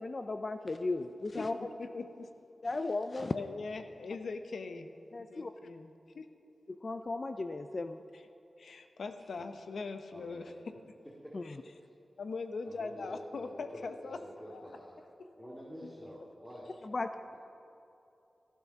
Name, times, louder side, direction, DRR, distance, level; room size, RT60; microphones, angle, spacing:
voice 1, 0.0-1.7 2.6-3.3 5.1-5.5 6.7-8.0 11.3-11.4 16.8-17.1, left 3 dB, 40° left, 9 dB, 0.4 m, -35 dB
voice 2, 1.4-2.3 3.3-4.9 5.2-6.3 8.1-8.2 8.6-10.7 12.2-14.2 14.5-14.7 15.2-15.3 15.8-15.9, left 4 dB, 80° left, 8 dB, 0.8 m, -41 dB
voice 3, 10.1-10.5 11.2-11.3 12.6-14.9 15.4-16.7 17.3-17.4, equal, 5° left, -7 dB, 2.3 m, -48 dB
14.5 x 12.0 x 5.8 m, 2.8 s
wide cardioid pair, 105°, 0 cm